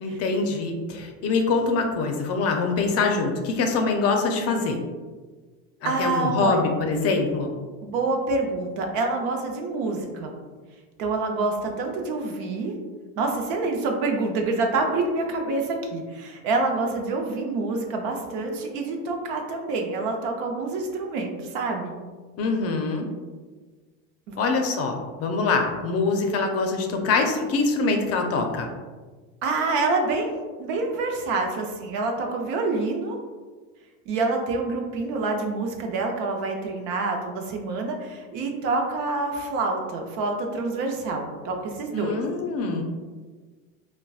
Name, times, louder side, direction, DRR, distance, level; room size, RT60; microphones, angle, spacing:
voice 1, 0.0-4.8 5.8-7.5 22.4-23.1 24.4-28.7 41.9-42.8, left 3 dB, 45° left, 3 dB, 0.5 m, -24 dB
voice 2, 5.8-6.6 7.8-10.3 11.0-12.7 13.2-21.9 24.3-24.4 29.4-33.2 34.1-42.2, right 3 dB, 70° right, 2 dB, 0.7 m, -27 dB
3.9 x 2.2 x 2.3 m, 1.4 s
supercardioid pair, 115°, 34 cm